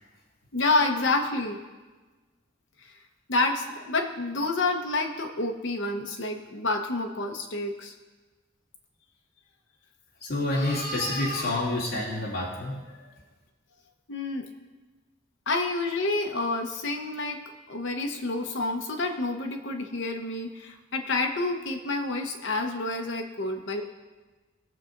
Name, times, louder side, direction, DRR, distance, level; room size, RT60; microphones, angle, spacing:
voice 1, 0.5-1.6 3.3-7.9 14.1-14.5 15.5-17.4 17.7-23.8, left 2 dB, 75° left, 3 dB, 1.0 m, -28 dB
voice 2, 10.2-12.8, left 1 dB, 55° left, -8 dB, 2.6 m, -28 dB
20.0 x 7.0 x 2.6 m, 1.3 s
head